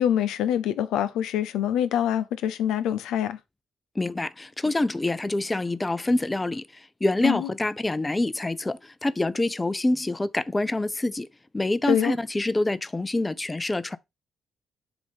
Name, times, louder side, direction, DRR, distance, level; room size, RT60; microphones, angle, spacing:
voice 1, 0.0-3.4 7.2-7.5 11.9-12.2, left 10 dB, 85° left, 0.5 m, -25 dB
voice 2, 4.0-11.3 11.5-14.0, left 2 dB, 20° left, 0.5 m, -26 dB
6.9 x 2.7 x 5.1 m
supercardioid pair, 60°, 0 cm